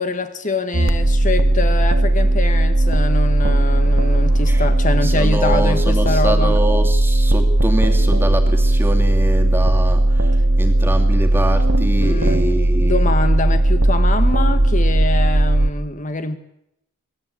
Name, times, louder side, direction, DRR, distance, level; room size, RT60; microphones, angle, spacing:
voice 1, 0.0-6.5 12.0-12.4 12.8-16.4, left 3 dB, 40° left, 1.5 m, -24 dB
sound 1, 0.7-15.7, right 1 dB, 70° right, 1.5 m, -16 dB
voice 2, 5.0-13.1, right 1 dB, 10° right, 2.5 m, -25 dB
23.5 x 18.0 x 8.5 m
head